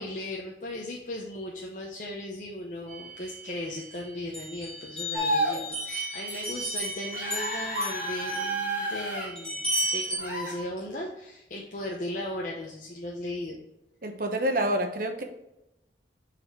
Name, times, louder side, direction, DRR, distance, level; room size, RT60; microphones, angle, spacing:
voice 1, 0.0-9.6 9.9-13.6, left 1 dB, 45° left, -1 dB, 0.8 m, -37 dB
sound 1, 2.9-3.9 4.3-10.2, right 1 dB, 5° left, 2.4 m, -34 dB
sound 2, 5.1-5.6 7.1-9.3 10.2-10.5, right 1 dB, 10° right, 2.1 m, -30 dB
voice 2, 14.0-15.2, right 1 dB, 50° right, 5 dB, 0.9 m, -27 dB
6.7 x 4.2 x 4.5 m, 0.90 s
head